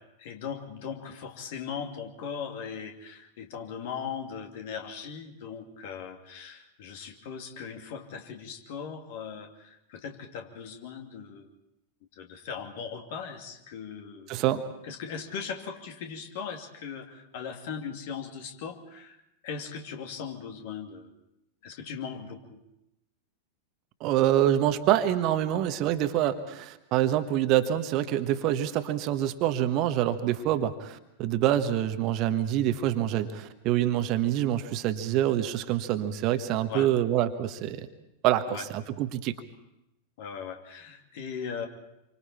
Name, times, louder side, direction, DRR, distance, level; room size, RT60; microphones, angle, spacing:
voice 1, 0.2-11.5 12.1-14.4 14.8-19.2 19.4-21.1 21.6-22.6 36.7-36.9 38.5-38.7 40.2-41.7, left 6 dB, 50° left, 3 dB, 2.7 m, -39 dB
voice 2, 14.3-14.6 24.0-37.9 38.2-39.4, right 12 dB, 40° right, 9 dB, 1.4 m, -26 dB
28.0 x 25.0 x 4.4 m, 0.86 s
figure-of-eight pair, 90°, 0 cm